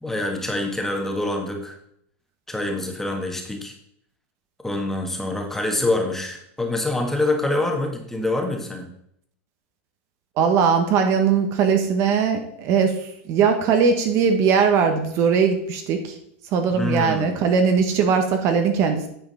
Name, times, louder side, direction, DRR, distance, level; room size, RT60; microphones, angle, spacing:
voice 1, 0.0-1.8 2.5-3.7 4.6-8.9 16.7-17.3, left 2 dB, 5° left, 2 dB, 1.5 m, -25 dB
voice 2, 10.4-16.2 16.5-19.1, right 6 dB, 40° right, 6 dB, 1.1 m, -20 dB
9.3 x 4.9 x 5.6 m, 0.71 s
supercardioid pair, 140°, 7 cm